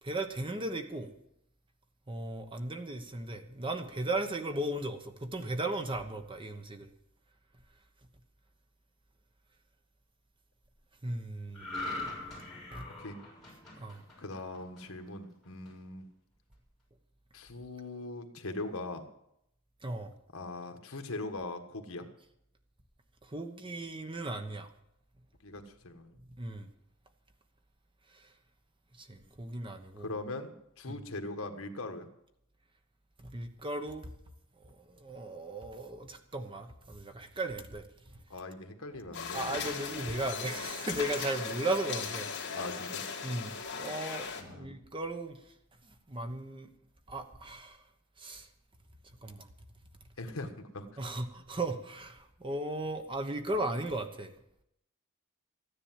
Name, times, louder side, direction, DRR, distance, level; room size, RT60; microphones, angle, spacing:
voice 1, 0.0-1.1 2.1-6.9 11.0-11.7 12.0-12.1 12.7-12.9 13.8-14.0 19.8-20.1 23.2-24.7 26.2-26.7 28.1-28.3 29.0-30.1 30.9-31.0 33.2-34.1 34.6-38.2 39.3-42.5 43.2-45.4 45.8-46.7 47.1-47.8 48.2-48.5 49.2-49.5 51.0-54.3, right 2 dB, 25° right, 7 dB, 1.1 m, -36 dB
sound 1, 11.5-15.0 15.4-15.7, left 2 dB, 5° left, 6.1 m, -41 dB
voice 2, 14.2-16.1 17.3-19.0 20.3-22.1 25.4-26.2 30.0-32.1 38.3-39.4 42.5-43.0 44.4-44.7 50.2-50.9, left 2 dB, 70° left, 6 dB, 1.6 m, -41 dB
sound 2, 39.1-44.4, left 5 dB, 55° left, 2.3 m, -38 dB
14.5 x 10.0 x 7.5 m, 0.79 s
head